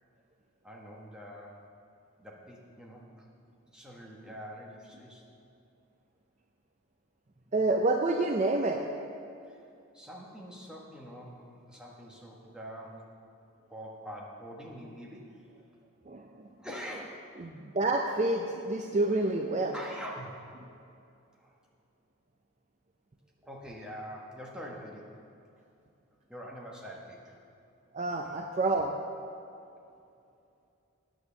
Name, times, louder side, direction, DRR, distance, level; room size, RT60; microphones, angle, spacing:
voice 1, 0.6-1.6 2.2-3.3 3.7-5.2 9.5-9.6 9.9-13.1 13.7-15.4 16.6-17.5 19.7-20.5 21.3-21.5 23.4-25.2 26.3-27.4 29.9-30.0, equal, 5° right, -3 dB, 1.2 m, -45 dB
voice 2, 7.5-8.9 16.1-16.5 17.4-19.7 27.9-28.9, right 2 dB, 30° right, 2 dB, 0.4 m, -28 dB
9.4 x 7.0 x 7.0 m, 2.6 s
head